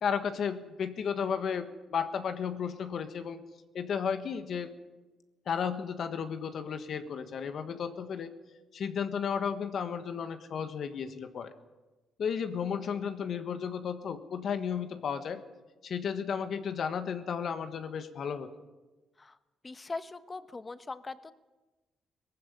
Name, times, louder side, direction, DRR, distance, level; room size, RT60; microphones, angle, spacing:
voice 1, 0.0-3.4 3.7-4.7 5.5-8.3 8.7-11.5 12.2-15.4 15.8-18.5, left 7 dB, 60° left, 9 dB, 1.5 m, -33 dB
voice 2, 19.6-21.3, left 3 dB, 25° left, 13 dB, 1.1 m, -40 dB
18.5 x 15.0 x 9.8 m, 1.2 s
cardioid pair, 95°, 0 cm